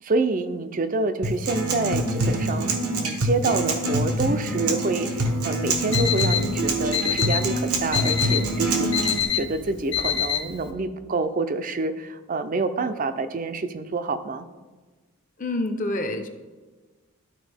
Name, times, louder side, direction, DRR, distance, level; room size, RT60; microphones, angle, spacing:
voice 1, 0.0-8.9 9.3-14.5, right 3 dB, 40° right, 10 dB, 0.4 m, -27 dB
Acoustic guitar, 1.2-9.2, right 1 dB, 85° right, 1.1 m, -25 dB
Alarm, 5.7-10.7, left 9 dB, 55° left, 1.1 m, -27 dB
voice 2, 15.4-16.3, left 1 dB, 35° left, 6 dB, 0.6 m, -27 dB
12.5 x 4.4 x 3.4 m, 1.3 s
head